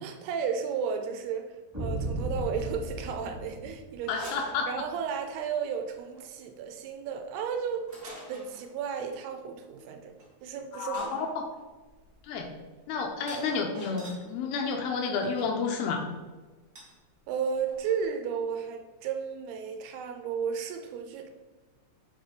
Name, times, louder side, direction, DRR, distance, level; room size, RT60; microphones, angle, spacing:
voice 1, 0.0-4.1 4.7-7.8 8.3-10.2 10.4-11.1 17.3-21.3, right 6 dB, 80° right, 5 dB, 2.7 m, -33 dB
sound 1, 1.7-4.3, right 1 dB, 15° right, 1.1 m, -35 dB
sound 2, 4.0-5.2 6.0-6.3 7.9-8.7 10.2-10.3 10.9-14.3 15.2-15.5 16.7-17.0 17.2-17.3 17.5-18.0, equal, 50° right, 0.6 m, -46 dB
voice 2, 4.1-4.7 10.7-11.5 12.2-12.5 12.9-16.0, left 5 dB, 75° left, 3 dB, 2.5 m, -30 dB
7.2 x 4.2 x 5.1 m, 1.3 s
omnidirectional pair, 4.7 m